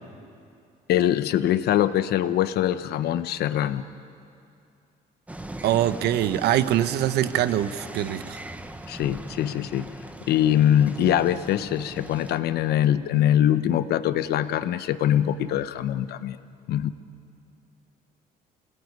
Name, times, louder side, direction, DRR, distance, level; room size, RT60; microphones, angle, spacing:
voice 1, 0.9-3.8 8.9-9.9 10.3-16.4 16.7-16.9, left 11 dB, 70° left, 12 dB, 1.0 m, -23 dB
sound 1, 5.3-12.4, right 1 dB, 10° right, 1.1 m, -40 dB
voice 2, 5.6-8.4, right 12 dB, 80° right, 13 dB, 1.0 m, -23 dB
27.0 x 18.5 x 9.6 m, 2.5 s
cardioid pair, 110°, 17 cm